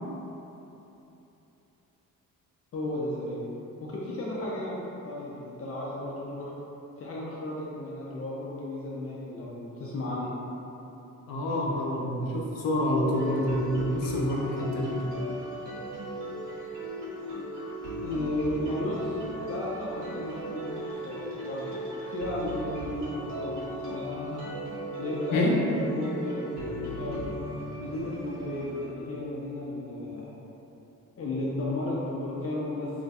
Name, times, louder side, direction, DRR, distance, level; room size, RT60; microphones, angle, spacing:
voice 1, 2.7-3.4 3.8-6.5 7.0-10.3 18.0-21.7 22.1-24.4 25.0-27.3 27.8-30.3 31.2-32.9, left 1 dB, 45° left, -6 dB, 0.4 m, -34 dB
voice 2, 11.3-14.9 25.3-25.5, left 1 dB, 85° left, -2 dB, 0.6 m, -27 dB
sound 1, 13.1-28.9, equal, 65° right, 1.2 m, -37 dB
2.4 x 2.2 x 4.0 m, 3.0 s
cardioid pair, 125°, 33 cm